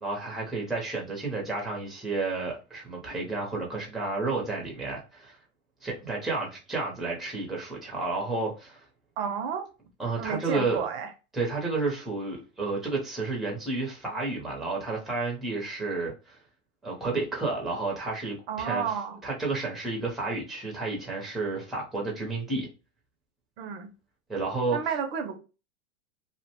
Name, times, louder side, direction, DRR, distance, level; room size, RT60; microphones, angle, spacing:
voice 1, 0.0-5.4 5.8-8.8 10.0-10.9 11.3-16.4 16.8-18.9 19.2-22.7 24.3-24.8, right 3 dB, ahead, 0.6 m, -31 dB
voice 2, 9.2-9.7 10.2-11.1 18.5-19.2 23.6-23.9 24.7-25.4, right 7 dB, 55° right, 0.5 m, -31 dB
2.5 x 2.1 x 2.8 m
hypercardioid pair, 130°, 35 cm